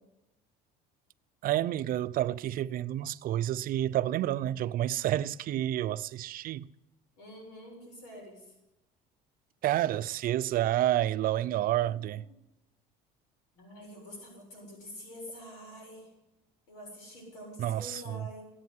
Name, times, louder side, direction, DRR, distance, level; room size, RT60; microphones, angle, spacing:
voice 1, 1.4-6.6 9.6-12.3 17.6-18.3, right 13 dB, 55° right, 0.6 m, -29 dB
voice 2, 7.2-8.5 11.8-12.3 13.5-16.1 16.7-18.5, equal, 90° left, 7.4 m, -47 dB
14.5 x 8.8 x 9.7 m
supercardioid pair, 105°, 18 cm